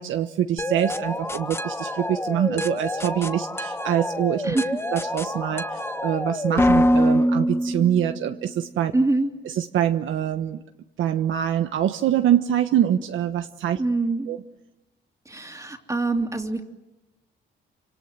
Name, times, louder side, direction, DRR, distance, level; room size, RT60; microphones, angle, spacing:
voice 1, 0.0-4.5 4.9-8.9 9.6-10.6 11.0-13.8 14.3-14.4, right 10 dB, 75° right, 6 dB, 1.2 m, -24 dB
sound 1, 0.6-8.4, equal, 10° left, 1.3 m, -25 dB
voice 2, 4.4-4.8 8.9-9.3 13.8-14.3 15.2-16.6, right 2 dB, 15° right, 2 dB, 3.0 m, -24 dB
28.5 x 26.0 x 7.7 m, 1.0 s
cardioid pair, 90°, 20 cm